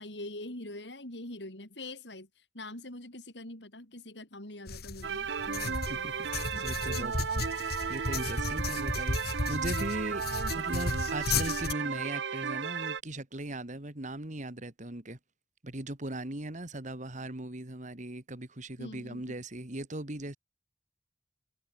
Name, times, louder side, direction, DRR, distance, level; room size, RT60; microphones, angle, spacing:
voice 1, 0.0-6.1 6.4-7.3 18.8-19.2, left 1 dB, 90° left, 6.4 m, -44 dB
sound 1, 4.7-11.7, left 3 dB, 65° left, 1.8 m, -34 dB
sound 2, 5.0-13.0, right 6 dB, 85° right, 0.7 m, -34 dB
voice 2, 5.9-6.3 6.6-7.2 7.9-10.2 10.5-15.2 15.6-20.4, right 1 dB, 45° right, 2.5 m, -39 dB
head